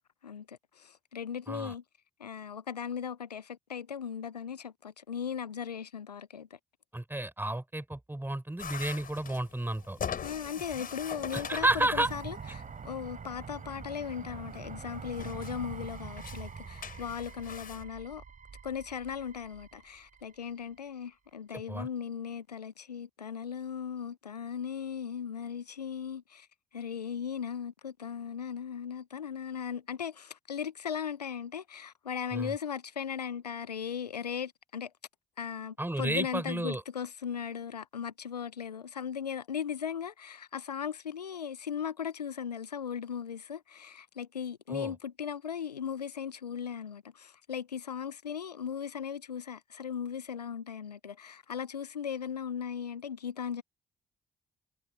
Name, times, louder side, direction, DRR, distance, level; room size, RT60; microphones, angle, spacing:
voice 1, 0.2-1.8 2.2-6.6 10.2-18.2 18.6-26.5 26.7-34.9 35.4-53.6, left 7 dB, 85° left, 1.1 m, -38 dB
voice 2, 6.9-10.0 11.3-12.1 21.5-21.9 32.3-32.5 35.8-36.8 44.7-44.9, right 1 dB, 10° right, 6.7 m, -32 dB
sound 1, 8.6-17.8, left 7 dB, 45° left, 5.2 m, -43 dB
sound 2, 9.9-20.8, right 6 dB, 40° right, 4.7 m, -45 dB
figure-of-eight pair, 40°, 20 cm